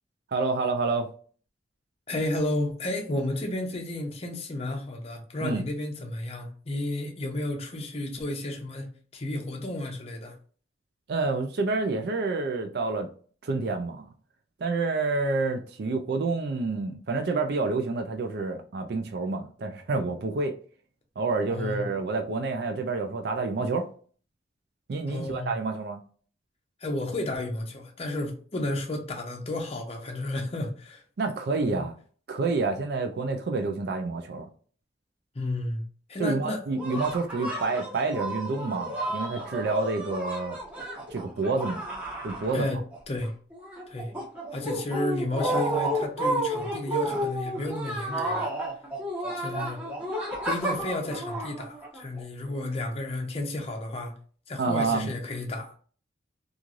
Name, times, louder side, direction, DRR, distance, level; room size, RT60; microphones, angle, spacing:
voice 1, 0.3-1.1 5.4-5.6 11.1-13.1 13.4-14.1 14.6-20.6 21.2-23.9 24.9-26.0 31.2-31.9 32.3-34.5 36.2-40.6 41.1-41.8 42.2-42.7 54.6-55.1, right 3 dB, 60° right, 0.4 m, -28 dB
voice 2, 2.1-10.3 21.5-21.9 25.1-25.6 26.8-31.0 31.6-31.8 35.3-36.6 42.5-42.8 43.1-43.3 43.9-44.1 44.5-48.5 49.3-49.8 50.4-54.1 54.5-55.7, left 1 dB, 35° left, 0.7 m, -32 dB
sound 1, 36.7-43.0 43.2-52.2, right 1 dB, 10° right, 1.0 m, -31 dB
3.1 x 2.4 x 2.4 m
head